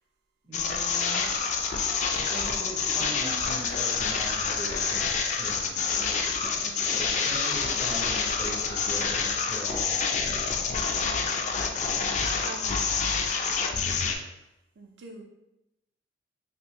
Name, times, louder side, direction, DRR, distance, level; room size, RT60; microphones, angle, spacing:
voice 1, 0.4-1.3 2.1-10.7, equal, 25° right, -1 dB, 0.5 m, -41 dB
sound 1, 0.5-14.2, left 5 dB, 40° left, 0.3 m, -27 dB
voice 2, 6.6-7.2 11.0-13.6 14.8-15.2, right 3 dB, 75° right, 1 dB, 0.5 m, -47 dB
3.4 x 2.5 x 2.9 m, 0.91 s
head